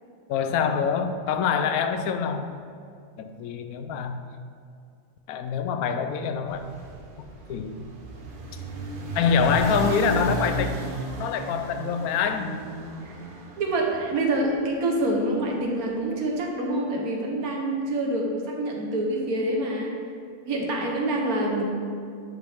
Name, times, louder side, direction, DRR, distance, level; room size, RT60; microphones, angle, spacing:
voice 1, 0.3-2.5 3.2-4.2 5.3-6.6 7.5-7.9 8.5-8.6 9.1-10.7 11.2-12.5, left 6 dB, 90° left, 8 dB, 1.1 m, -25 dB
sound 1, 6.5-14.8, right 3 dB, 45° right, 0.9 m, -34 dB
voice 2, 13.6-19.9 20.5-21.6, right 1 dB, 85° right, 0 dB, 1.6 m, -26 dB
11.0 x 5.5 x 3.5 m, 2.3 s
omnidirectional pair, 1.5 m